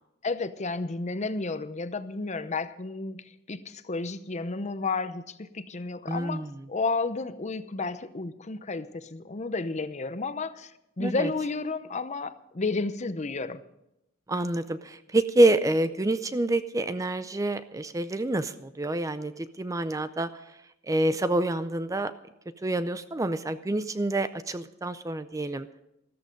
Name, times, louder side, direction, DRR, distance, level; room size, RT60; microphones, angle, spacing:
voice 1, 0.2-10.7 11.0-13.6, left 3 dB, 35° left, 13 dB, 0.7 m, -32 dB
voice 2, 6.1-6.5 11.0-11.3 14.3-20.3 20.9-22.1 22.6-25.7, right 2 dB, 15° right, 12 dB, 0.5 m, -27 dB
14.0 x 13.5 x 5.2 m, 0.84 s
head